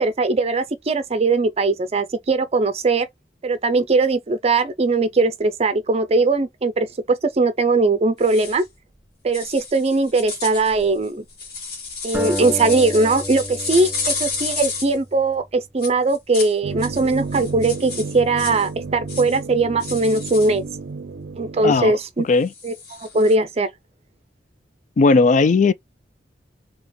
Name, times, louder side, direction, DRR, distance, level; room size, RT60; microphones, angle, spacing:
voice 1, 0.0-3.1 3.4-8.6 9.2-11.3 12.0-20.6 21.4-22.2 22.6-22.7 23.0-23.7, right 3 dB, 35° right, 0.5 m, -20 dB
sound 1, 8.2-8.6 9.3-15.0 15.8-16.5 16.8-18.7 19.1-19.4 19.8-20.5 22.5-23.3, left 4 dB, 60° left, 1.9 m, -31 dB
sound 2, 12.1-15.4, equal, 5° right, 2.3 m, -31 dB
sound 3, 16.6-21.9, right 4 dB, 90° right, 0.5 m, -32 dB
voice 2, 21.6-22.5 25.0-25.7, left 4 dB, 45° left, 0.4 m, -17 dB
4.2 x 2.9 x 3.7 m
head